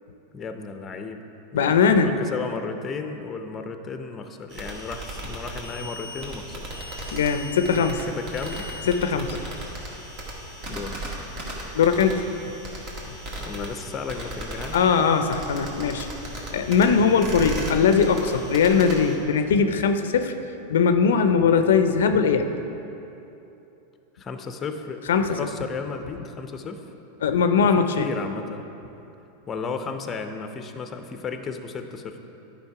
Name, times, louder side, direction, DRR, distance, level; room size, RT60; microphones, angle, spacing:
voice 1, 0.3-1.2 1.5-6.7 7.8-8.7 9.3-9.6 10.7-11.2 13.4-14.8 24.1-25.0 25.3-26.8 27.6-28.7 29.5-32.2, left 5 dB, 25° left, 7 dB, 0.6 m, -34 dB
voice 2, 1.5-2.1 7.1-8.0 8.9-9.3 11.7-12.2 14.7-16.1 16.5-20.3 20.7-22.5 25.1-25.4 27.2-28.1, left 6 dB, 85° left, 8 dB, 0.5 m, -20 dB
sound 1, 4.5-19.2, right 1 dB, 50° right, 1.9 m, -36 dB
10.5 x 5.1 x 4.8 m, 2.9 s
hypercardioid pair, 120°, 0 cm